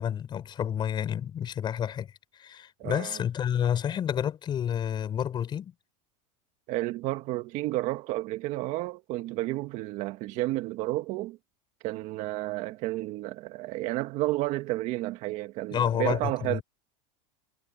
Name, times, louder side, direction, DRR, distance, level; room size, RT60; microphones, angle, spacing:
voice 1, 0.0-5.7 15.7-16.6, left 9 dB, 30° left, 5.3 m, -30 dB
voice 2, 2.8-3.2 6.7-11.4 11.8-16.6, right 17 dB, 45° right, 1.9 m, -31 dB
supercardioid pair, 135°, 16 cm